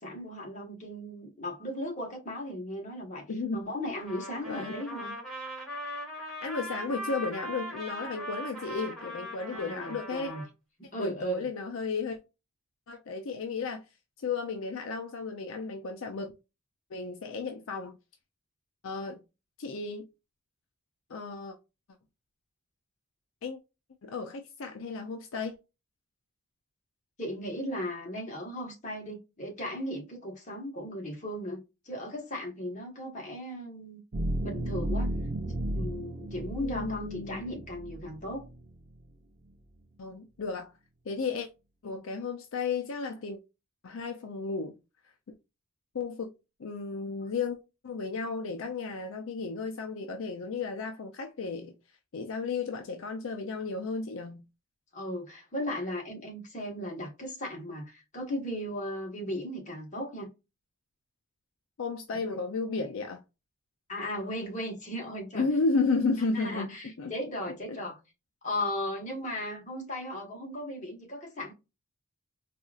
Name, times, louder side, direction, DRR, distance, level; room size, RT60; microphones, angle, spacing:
voice 1, 0.0-3.2 3.5-5.1 9.5-10.4 10.8-11.4 27.2-31.6 31.8-34.0 34.4-35.1 35.7-38.4 54.9-60.3 62.3-62.4 63.9-65.5 66.3-68.0 68.4-71.5, left 1 dB, 35° left, 1.3 m, -36 dB
voice 2, 3.3-3.6 4.5-4.8 6.4-10.3 11.0-12.2 12.9-13.8 14.2-16.3 16.9-18.0 18.8-19.2 19.6-20.1 21.1-21.6 23.4-23.6 24.0-25.5 36.6-37.4 40.0-40.7 41.1-41.5 41.8-43.4 43.8-44.8 45.9-46.3 46.6-47.6 47.8-51.8 52.1-54.5 61.8-63.2 65.3-67.1 67.7-67.8, left 4 dB, 65° left, 0.4 m, -33 dB
Trumpet, 3.9-10.5, equal, ahead, 1.7 m, -40 dB
sound 1, 34.1-38.9, right 1 dB, 45° right, 0.5 m, -34 dB
4.2 x 2.4 x 2.3 m
head